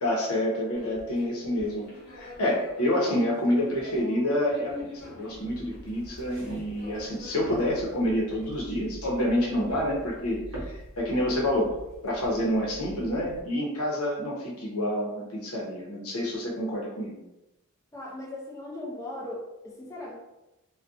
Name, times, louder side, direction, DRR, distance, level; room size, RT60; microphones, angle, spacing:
voice 1, 0.0-1.8 2.1-11.7 12.0-17.2, left 1 dB, 85° left, -3 dB, 0.8 m, -28 dB
sound 1, 0.7-7.4, left 1 dB, 50° left, 0.9 m, -45 dB
sound 2, 5.3-13.4, right 1 dB, 60° right, 0.6 m, -44 dB
voice 2, 17.9-20.2, left 1 dB, 15° left, -4 dB, 0.4 m, -38 dB
2.5 x 2.2 x 2.4 m, 0.94 s
head